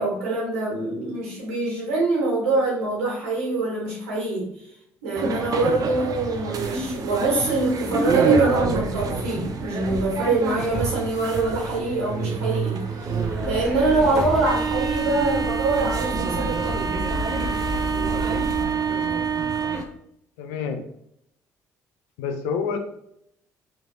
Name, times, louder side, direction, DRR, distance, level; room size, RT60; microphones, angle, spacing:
voice 1, 0.0-4.5 5.0-16.9, right 2 dB, 90° right, -4 dB, 1.4 m, -24 dB
sound 1, 5.1-19.8, right 5 dB, 50° right, 0.6 m, -26 dB
sound 2, 13.1-18.7, equal, ahead, 0.5 m, -32 dB
voice 2, 20.4-20.9 22.2-22.8, left 6 dB, 80° left, 6 dB, 0.5 m, -27 dB
4.3 x 3.1 x 2.8 m, 0.74 s
hypercardioid pair, 55°, 8 cm